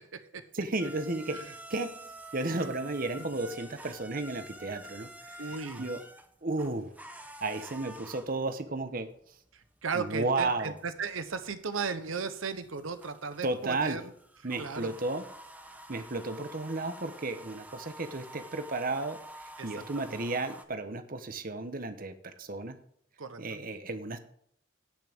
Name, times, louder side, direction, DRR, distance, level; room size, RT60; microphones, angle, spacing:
voice 1, 0.5-1.4 1.7-6.0 6.4-6.9 7.4-9.4 9.9-10.7 13.4-14.0 14.4-15.2 15.9-22.8 23.4-24.2, right 2 dB, 45° right, 9 dB, 1.0 m, -33 dB
sound 1, 0.8-20.6, right 1 dB, 10° right, 0.8 m, -49 dB
voice 2, 5.4-5.8 9.8-14.0 14.6-14.9 20.0-20.1 23.2-23.4, right 5 dB, 85° right, 10 dB, 0.9 m, -35 dB
17.5 x 6.2 x 3.5 m, 0.67 s
head